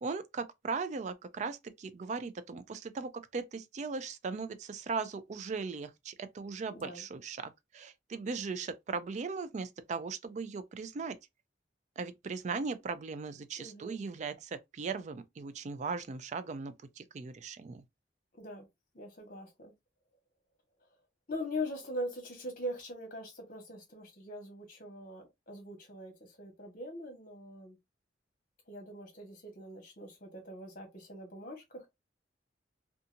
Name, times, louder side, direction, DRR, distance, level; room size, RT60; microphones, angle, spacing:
voice 1, 0.0-1.6 1.9-7.4 7.8-11.2 12.0-14.3 14.8-16.7 17.1-17.8, right 4 dB, 40° right, 0.3 m, -38 dB
voice 2, 6.7-7.1 13.6-14.0 18.3-18.7 18.9-19.7 21.3-27.8 28.7-31.9, left 1 dB, 50° left, 1.2 m, -42 dB
2.7 x 2.3 x 2.5 m
head